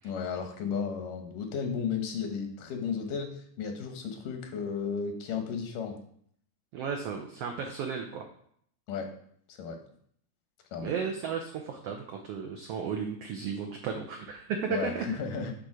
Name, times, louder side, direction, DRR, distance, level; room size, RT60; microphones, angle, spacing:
voice 1, 0.0-6.0 8.9-9.1 9.5-9.8 10.7-10.9 14.7-15.5, left 6 dB, 80° left, 4 dB, 2.6 m, -34 dB
voice 2, 6.7-8.2 10.8-15.0, right 6 dB, 90° right, 3 dB, 1.3 m, -34 dB
9.1 x 3.9 x 4.8 m, 0.64 s
omnidirectional pair, 3.7 m